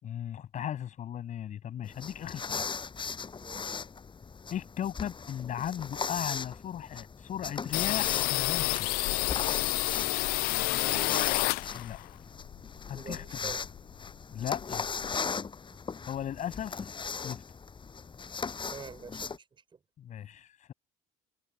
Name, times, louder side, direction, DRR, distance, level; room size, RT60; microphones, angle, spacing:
voice 1, 0.0-2.6 4.5-8.9 11.7-12.0 12.9-13.5 14.3-14.8 16.1-16.8 17.2-17.4 20.0-20.7, left 10 dB, 50° left, 5.9 m, -37 dB
sound 1, 1.9-19.4, left 5 dB, 30° left, 7.8 m, -39 dB
voice 2, 3.4-3.8 10.7-11.2 12.9-13.6 18.7-19.8, right 5 dB, 30° right, 5.4 m, -46 dB
sound 2, 7.7-12.1 12.4-13.8 14.1-14.2 14.4-15.2, left 21 dB, 70° left, 0.4 m, -29 dB
supercardioid pair, 85°, 16 cm